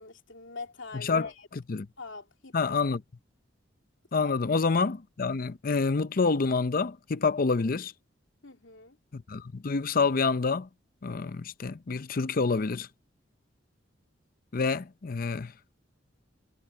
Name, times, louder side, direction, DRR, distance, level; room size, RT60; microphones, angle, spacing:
voice 1, 0.0-1.5 2.0-2.9 4.2-4.3 8.4-9.0, left 4 dB, 85° left, 2.7 m, -43 dB
voice 2, 0.9-1.3 1.7-1.9 2.5-3.0 4.1-7.9 9.1-10.7 11.0-12.9 14.5-15.5, left 4 dB, 50° left, 0.6 m, -27 dB
head